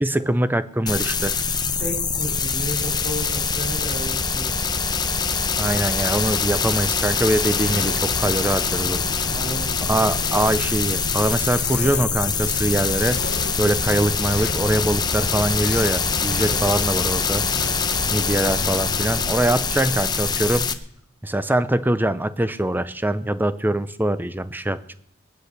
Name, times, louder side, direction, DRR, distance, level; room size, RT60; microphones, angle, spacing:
voice 1, 0.0-1.3 5.6-9.1 9.9-13.2 13.6-17.4 18.1-20.7 21.2-24.9, right 1 dB, 10° right, 14 dB, 0.6 m, -23 dB
sound 1, 0.9-20.7, left 5 dB, 20° left, 0.9 m, -24 dB
voice 2, 1.3-4.6 9.3-9.7 16.4-16.6, equal, 30° right, 1 dB, 3.7 m, -33 dB
sound 2, 5.8-6.5 7.2-8.0 8.9-9.1 9.8-10.7 11.4-12.1 12.6-13.5 14.1-14.6 15.1-15.9 16.3-16.7 17.4-17.8 18.3-18.8 19.4-19.6, left 5 dB, 55° left, 1.1 m, -37 dB
sound 3, 7.4-19.3, left 3 dB, 85° left, 0.8 m, -34 dB
20.5 x 9.8 x 6.7 m, 0.71 s
head